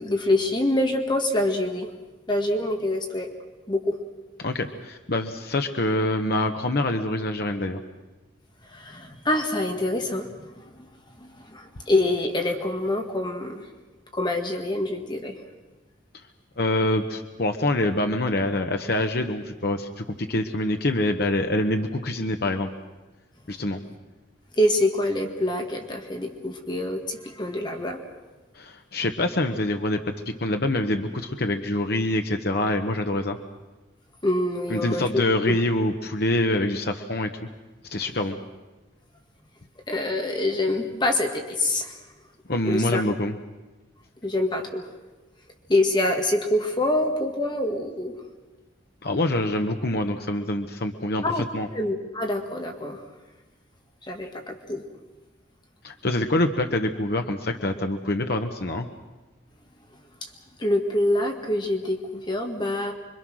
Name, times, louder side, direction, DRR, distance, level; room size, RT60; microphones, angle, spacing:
voice 1, 0.0-1.9 2.3-3.3 3.7-4.0 8.6-10.9 11.2-13.7 14.1-15.4 24.6-28.0 34.2-35.6 39.9-42.0 42.7-43.0 44.2-44.9 45.7-48.1 51.2-51.4 51.7-53.0 54.0-54.8 60.2-60.3 60.6-62.9, left 1 dB, 25° left, 3 dB, 1.8 m, -26 dB
voice 2, 4.4-7.8 16.6-22.7 23.5-23.8 28.5-30.0 30.4-33.4 34.7-37.3 37.9-38.4 42.5-43.3 49.0-51.2 51.5-51.7 55.8-58.9, left 1 dB, 55° left, 5 dB, 1.1 m, -25 dB
26.0 x 23.5 x 6.3 m, 1.2 s
head